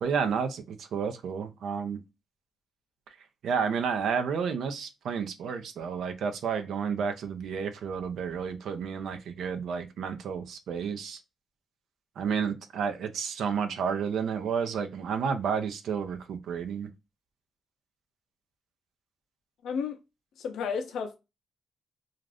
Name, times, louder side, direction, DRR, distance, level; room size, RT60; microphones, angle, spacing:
voice 1, 0.0-2.0 3.4-11.2 12.2-16.9, right 6 dB, 80° right, 0.5 m, -31 dB
voice 2, 19.6-20.0 20.4-21.2, left 6 dB, 85° left, 0.5 m, -32 dB
2.5 x 2.4 x 3.3 m
cardioid pair, 95°, 0 cm